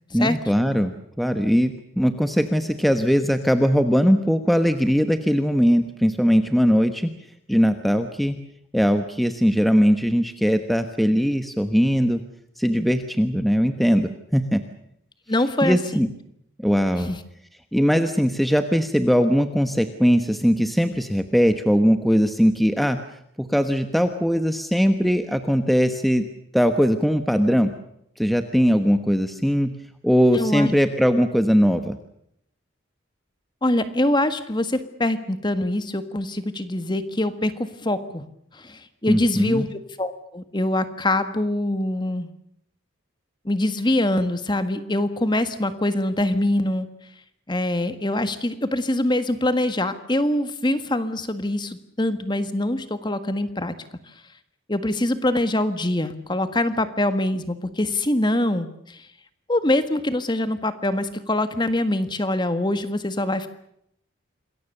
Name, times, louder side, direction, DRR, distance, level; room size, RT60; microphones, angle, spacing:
voice 1, 0.1-7.1 7.5-8.4 8.7-12.2 12.6-14.6 15.6-16.1 16.6-17.1 17.7-23.0 23.4-26.2 26.5-27.7 28.2-29.7 30.0-32.0 39.1-39.7, equal, ahead, 7 dB, 1.1 m, -20 dB
voice 2, 15.3-16.0 16.9-17.2 30.3-30.7 33.6-38.2 38.5-42.3 43.4-46.9 47.5-53.7 54.7-59.0 59.5-63.5, left 1 dB, 20° left, 10 dB, 1.6 m, -24 dB
27.0 x 21.5 x 6.8 m, 0.73 s
head